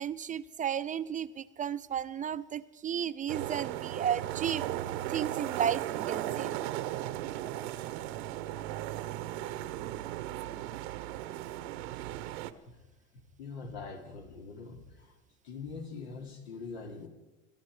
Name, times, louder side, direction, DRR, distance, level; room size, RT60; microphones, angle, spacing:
voice 1, 0.0-4.7 5.1-6.5, right 9 dB, 25° right, 14 dB, 0.5 m, -33 dB
sound 1, 3.3-12.5, right 13 dB, 80° right, 1.0 m, -36 dB
voice 2, 13.4-15.1 15.4-17.1, left 4 dB, 85° left, 3 dB, 3.0 m, -43 dB
24.0 x 12.0 x 4.9 m, 1.0 s
supercardioid pair, 105°, 31 cm